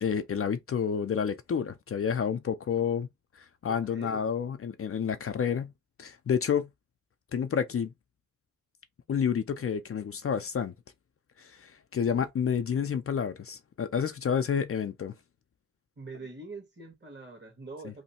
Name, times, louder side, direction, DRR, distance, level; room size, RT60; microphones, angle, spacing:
voice 1, 0.0-3.1 3.4-5.7 6.0-6.7 7.3-7.9 9.1-10.7 11.4-15.1 17.8-17.9, left 7 dB, 50° left, 0.4 m, -29 dB
voice 2, 3.7-4.3 16.0-18.0, right 3 dB, 40° right, 1.6 m, -44 dB
3.1 x 2.1 x 4.2 m
cardioid pair, 75°, 30 cm